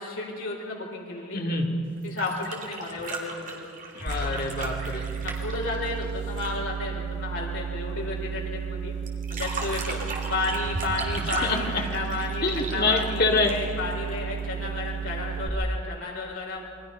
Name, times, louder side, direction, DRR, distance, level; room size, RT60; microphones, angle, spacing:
voice 1, 0.0-1.4 2.0-3.7 5.2-8.9 9.3-10.0 10.3-16.6, left 3 dB, 80° left, -3 dB, 4.8 m, -32 dB
voice 2, 1.3-1.7 3.9-5.1 11.4-11.6 12.4-13.5, left 3 dB, 45° left, 1 dB, 2.4 m, -25 dB
sound 1, 2.0-6.6 9.1-13.9 15.3-15.4, right 3 dB, 40° right, 2.8 m, -36 dB
sound 2, 4.1-15.5, right 7 dB, 70° right, 2.0 m, -33 dB
28.0 x 22.5 x 5.6 m, 2.5 s
head